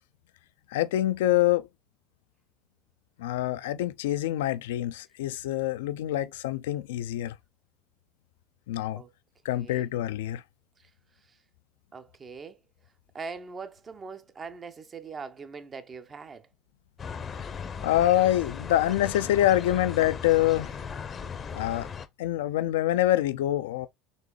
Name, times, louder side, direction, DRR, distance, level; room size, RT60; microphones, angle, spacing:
voice 1, 0.7-1.7 3.2-7.3 8.7-9.0 9.4-10.4 17.8-20.8 21.5-21.9 22.2-23.9, left 13 dB, 80° left, 0.3 m, -25 dB
voice 2, 9.5-9.9 10.8-10.9 11.9-12.6 13.1-16.5, right 5 dB, 35° right, 0.7 m, -41 dB
sound 1, 17.0-22.1, left 6 dB, 35° left, 0.6 m, -37 dB
4.0 x 3.2 x 3.0 m
hypercardioid pair, 80°, 0 cm